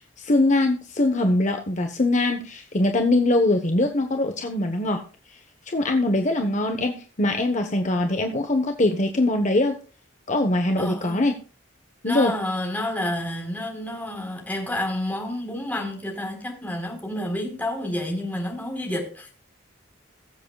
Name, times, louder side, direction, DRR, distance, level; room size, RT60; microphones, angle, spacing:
voice 1, 0.2-5.0 5.7-9.8 10.3-11.4 12.0-12.3, left 2 dB, 40° left, 1.2 m, -22 dB
voice 2, 10.8-11.2 12.0-19.3, left 1 dB, 10° left, 4.0 m, -29 dB
22.0 x 7.8 x 2.4 m
head